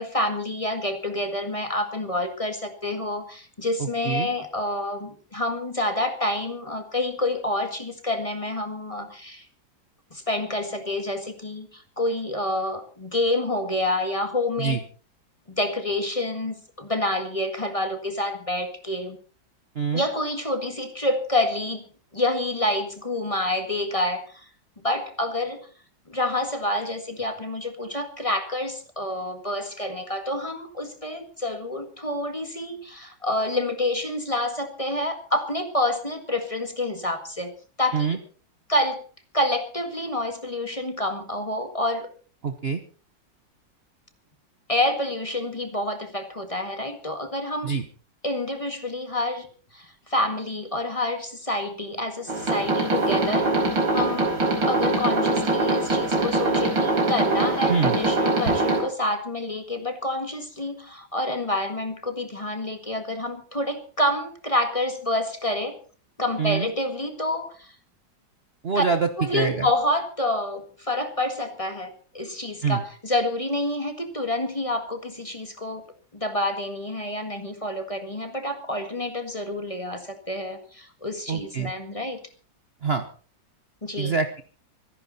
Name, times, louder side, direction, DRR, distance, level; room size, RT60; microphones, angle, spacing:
voice 1, 0.0-9.5 10.1-14.8 15.5-19.2 19.9-21.9 22.1-24.5 24.8-25.6 26.1-37.5 37.8-38.2 38.7-39.0 39.3-42.1 44.7-47.7 48.2-49.5 49.7-54.3 54.7-65.8 66.2-67.8 68.8-68.9 69.2-75.8 76.1-82.2 83.8-84.1, left 1 dB, 20° left, 7 dB, 1.8 m, -28 dB
voice 2, 3.8-4.3 14.6-14.8 19.7-20.0 37.9-38.2 42.4-42.8 47.6-47.9 57.7-58.0 66.4-66.7 68.6-69.7 72.6-72.8 81.3-81.7 82.8-83.0 84.0-84.4, right 5 dB, 40° right, 8 dB, 1.0 m, -25 dB
sound 1, 52.3-58.8, right 2 dB, 75° right, 5.2 m, -23 dB
25.0 x 11.0 x 4.1 m, 0.40 s
omnidirectional pair, 2.0 m